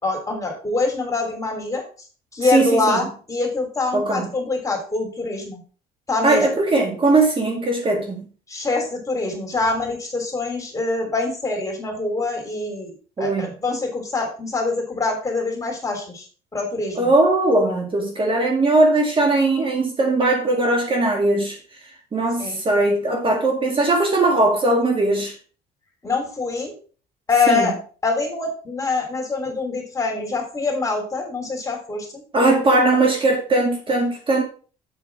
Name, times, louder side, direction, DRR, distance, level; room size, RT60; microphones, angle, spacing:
voice 1, 0.0-1.8 2.3-5.6 6.1-6.4 8.5-16.2 16.5-17.1 22.4-22.6 26.0-26.7 27.3-27.7 28.0-32.2, left 3 dB, 20° left, 3.4 m, -24 dB
voice 2, 2.5-3.0 3.9-4.3 6.2-8.3 13.2-13.5 17.0-21.6 22.1-25.3 27.5-27.8 32.3-34.4, right 2 dB, 30° right, 2.1 m, -19 dB
7.5 x 6.3 x 4.8 m
cardioid pair, 110°, 17 cm